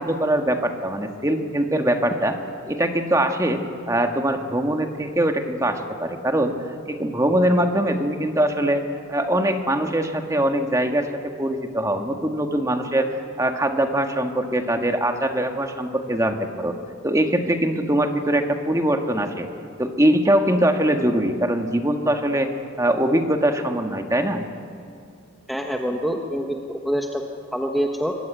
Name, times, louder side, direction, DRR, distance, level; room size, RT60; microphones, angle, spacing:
voice 1, 0.0-2.4 2.7-6.5 6.8-8.8 9.1-13.1 13.4-16.7 17.0-19.5 19.8-22.5 22.8-24.4, right 1 dB, 15° right, 5 dB, 1.7 m, -22 dB
voice 2, 25.5-27.2 27.5-28.1, equal, ahead, 2 dB, 1.3 m, -25 dB
23.5 x 22.0 x 9.2 m, 2.3 s
head